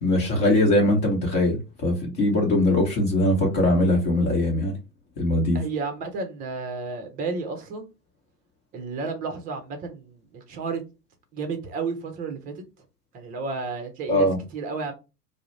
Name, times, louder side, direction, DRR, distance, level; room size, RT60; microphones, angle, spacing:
voice 1, 0.0-4.7 5.2-5.6 14.1-14.4, left 1 dB, 35° left, 1.0 m, -21 dB
voice 2, 5.5-7.9 8.7-10.8 11.3-12.6 13.1-14.9, right 4 dB, 20° right, 0.5 m, -32 dB
2.3 x 2.0 x 3.1 m
figure-of-eight pair, 95°, 48 cm